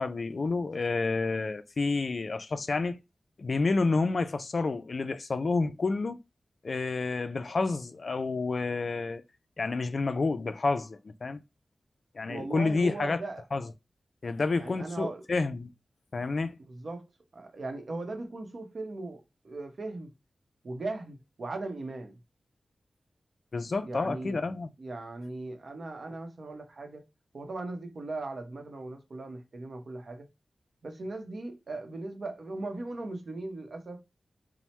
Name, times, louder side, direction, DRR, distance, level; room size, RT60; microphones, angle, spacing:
voice 1, 0.0-3.0 3.4-6.2 6.6-9.2 9.6-11.4 12.1-13.2 13.5-13.7 14.2-15.7 16.1-16.5 23.5-24.7, left 3 dB, 55° left, 0.3 m, -29 dB
voice 2, 12.3-13.4 14.5-15.2 16.7-17.0 17.3-20.1 20.6-22.2 23.8-24.4 24.8-27.1 27.3-30.3 30.8-34.0, right 2 dB, 60° right, 0.7 m, -38 dB
2.9 x 2.0 x 3.1 m
wide cardioid pair, 75°, 0 cm